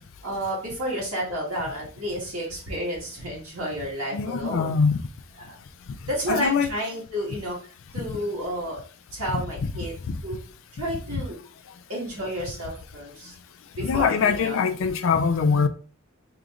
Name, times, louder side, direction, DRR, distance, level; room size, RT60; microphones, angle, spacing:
voice 1, 0.2-4.7 5.5-5.6 6.1-7.6 7.9-8.8 9.1-10.4 10.7-11.4 11.9-13.3 13.8-14.6, equal, 75° right, 1.9 m, -31 dB
voice 2, 4.1-5.0 6.3-6.7 8.0-8.2 10.1-10.2 13.8-15.7, left 5 dB, 60° left, 0.4 m, -23 dB
4.8 x 2.9 x 2.5 m
head